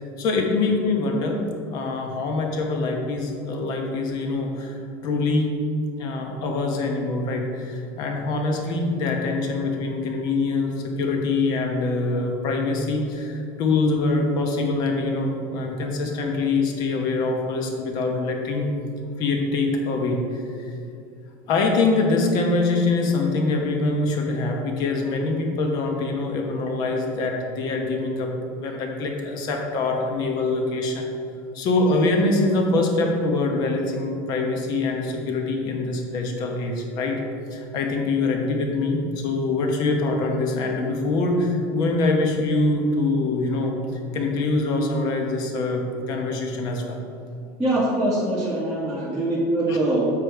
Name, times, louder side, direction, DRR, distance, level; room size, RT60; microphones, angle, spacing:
voice 1, 0.2-1.4 1.7-5.5 6.0-18.7 19.2-20.7 21.5-31.1 31.5-37.2 37.5-47.0 49.7-49.8, left 3 dB, 40° left, 2 dB, 1.0 m, -24 dB
voice 2, 47.6-50.1, right 1 dB, ahead, -11 dB, 1.1 m, -23 dB
7.3 x 5.0 x 4.6 m, 2.6 s
cardioid pair, 175°, 10 cm